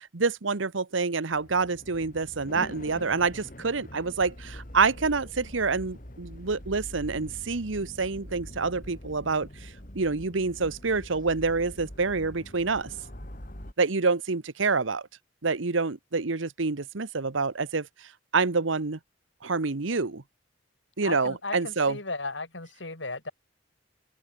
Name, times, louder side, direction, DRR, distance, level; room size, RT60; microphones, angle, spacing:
voice 1, 0.0-9.7 9.9-12.9 13.8-15.0 15.4-17.9 18.3-19.0 19.4-20.2 21.0-22.0, right 4 dB, 80° right, 1.1 m, -27 dB
sound 1, 1.3-13.7, equal, 45° left, 5.5 m, -44 dB
voice 2, 21.0-23.3, left 3 dB, 65° left, 5.0 m, -35 dB
head